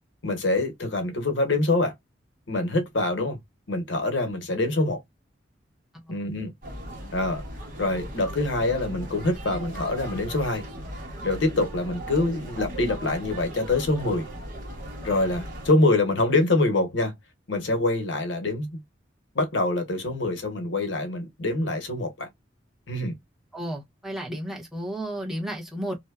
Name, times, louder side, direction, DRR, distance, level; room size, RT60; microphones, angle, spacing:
voice 1, 0.2-1.9 2.5-3.4 3.7-5.0 6.1-6.5 7.1-7.4 7.8-10.6 11.2-14.3 15.0-17.1 17.5-18.8 19.3-22.3 22.9-23.2, left 2 dB, 85° left, 0.9 m, -25 dB
sound 1, 6.6-15.7, equal, 50° right, 1.1 m, -37 dB
voice 2, 23.5-26.0, right 1 dB, ahead, 0.9 m, -33 dB
2.7 x 2.2 x 2.2 m
head